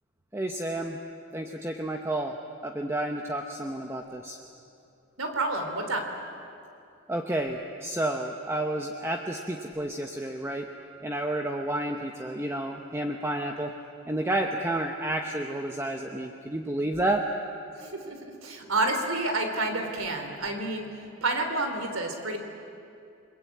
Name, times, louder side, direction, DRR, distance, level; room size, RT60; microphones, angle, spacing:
voice 1, 0.3-1.0 1.3-2.4 2.6-4.4 7.1-10.7 11.0-13.7 14.1-17.3, right 1 dB, 10° right, 3 dB, 1.0 m, -30 dB
voice 2, 5.2-6.1 17.8-20.9 21.2-22.4, right 2 dB, 75° right, 5 dB, 3.5 m, -29 dB
29.5 x 21.5 x 8.6 m, 2.6 s
head